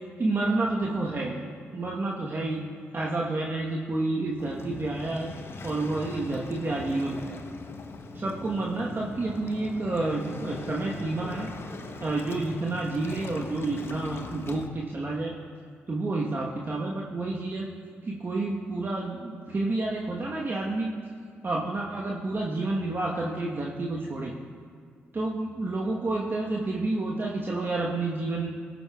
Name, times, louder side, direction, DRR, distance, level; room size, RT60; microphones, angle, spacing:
voice 1, 0.2-2.6 2.9-5.3 5.6-7.4 8.1-11.5 12.0-15.3 15.9-17.7 18.0-20.9 21.4-24.3 25.1-28.5, right 2 dB, 40° right, -3 dB, 1.1 m, -29 dB
Waves surf, 4.4-14.7, left 2 dB, 50° left, 0.8 m, -40 dB
17.5 x 8.2 x 2.3 m, 2.2 s
hypercardioid pair, 45°, 5 cm